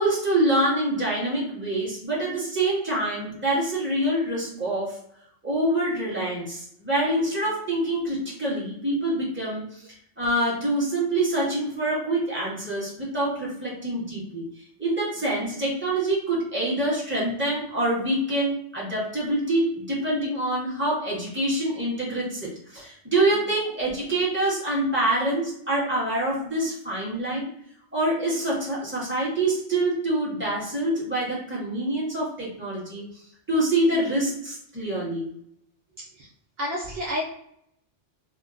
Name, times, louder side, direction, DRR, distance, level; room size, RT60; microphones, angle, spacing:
voice 1, 0.0-5.0 5.4-9.8 10.2-14.4 14.8-27.5 27.9-33.0 33.5-35.4, right 1 dB, 10° right, -7 dB, 1.2 m, -26 dB
voice 2, 36.6-37.3, left 1 dB, 65° right, -4 dB, 0.9 m, -29 dB
2.8 x 2.1 x 3.6 m, 0.69 s
omnidirectional pair, 1.2 m